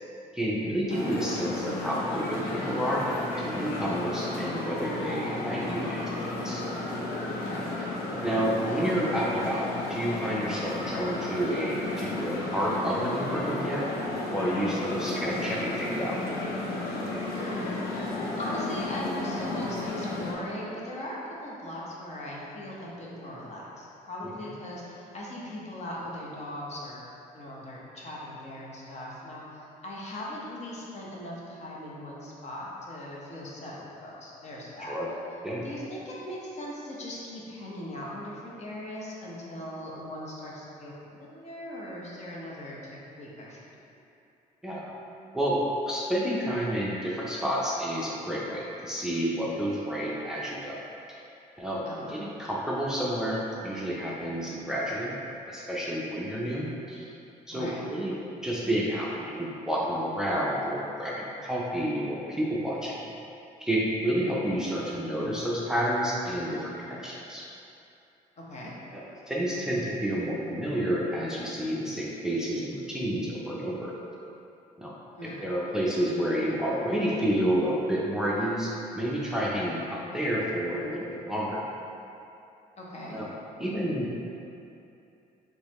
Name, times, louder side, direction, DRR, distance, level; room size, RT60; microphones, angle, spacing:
voice 1, 0.3-3.0 3.4-6.6 8.2-9.6 9.9-13.9 14.3-16.2 24.2-24.5 34.8-35.1 35.4-35.7 44.6-44.9 45.3-50.8 51.6-51.8 52.1-55.1 55.5-57.1 57.5-58.2 58.4-63.0 63.6-67.4 68.9-73.9 74.8-74.9 75.4-81.6 83.1-83.3 83.6-84.1, equal, 5° right, -6 dB, 0.5 m, -30 dB
sound 1, 0.9-20.3, left 2 dB, 90° left, 0.6 m, -33 dB
voice 2, 7.3-7.7 17.2-27.0 27.3-34.9 35.6-43.9 51.9-52.1 57.5-57.8 68.4-68.7 75.1-75.4 82.8-83.2, left 1 dB, 45° left, -5 dB, 0.8 m, -39 dB
3.8 x 3.1 x 3.0 m, 2.7 s
cardioid pair, 100°, 15 cm